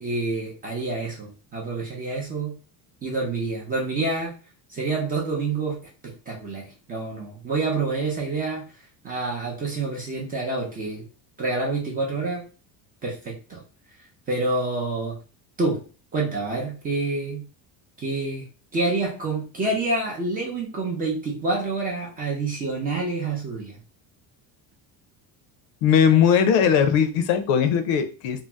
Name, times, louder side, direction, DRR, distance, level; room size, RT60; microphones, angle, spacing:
voice 1, 0.0-2.6 3.0-4.3 4.7-5.8 6.0-8.6 9.0-11.0 11.4-12.5 13.0-13.6 14.3-15.2 15.6-15.8 16.1-17.4 18.0-18.5 18.7-23.8, right 3 dB, 20° right, -2 dB, 0.5 m, -27 dB
voice 2, 25.8-28.4, left 7 dB, 80° left, 9 dB, 0.6 m, -19 dB
2.7 x 2.0 x 3.3 m, 0.35 s
cardioid pair, 175°, 41 cm